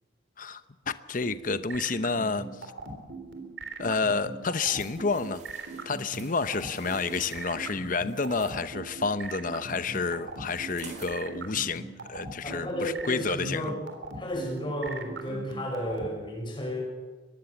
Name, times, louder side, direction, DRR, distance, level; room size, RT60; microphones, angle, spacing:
voice 1, 0.4-2.5 3.8-5.4 5.9-13.7, left 4 dB, 45° left, 12 dB, 0.9 m, -30 dB
sound 1, 1.2-16.1, right 3 dB, 90° right, 3.6 m, -39 dB
sound 2, 4.6-8.6 10.5-11.2 11.7-11.8, right 3 dB, 40° right, 4.2 m, -48 dB
voice 2, 12.4-13.8 14.2-16.8, equal, 25° left, 2 dB, 6.5 m, -33 dB
23.5 x 20.5 x 7.2 m, 1.3 s
head